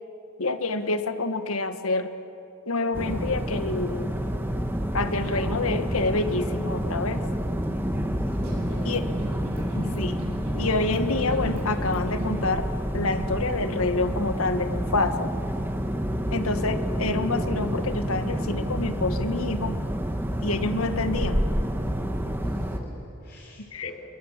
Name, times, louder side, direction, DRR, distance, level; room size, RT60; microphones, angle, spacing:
voice 1, 0.4-2.1 2.7-4.2 4.9-7.2 8.8-9.0 9.7-10.2 10.5-12.7 12.9-15.3 16.3-19.8 20.4-21.4 23.7-23.9, left 3 dB, 75° left, 9 dB, 1.4 m, -27 dB
sound 1, 2.9-22.8, equal, 10° right, 1.5 m, -28 dB
sound 2, 8.3-12.5, left 1 dB, 90° right, 6.9 m, -41 dB
voice 2, 8.4-8.9 9.5-9.7 22.4-23.9, left 1 dB, 45° left, -5 dB, 4.1 m, -45 dB
29.5 x 21.0 x 7.4 m, 2.9 s
head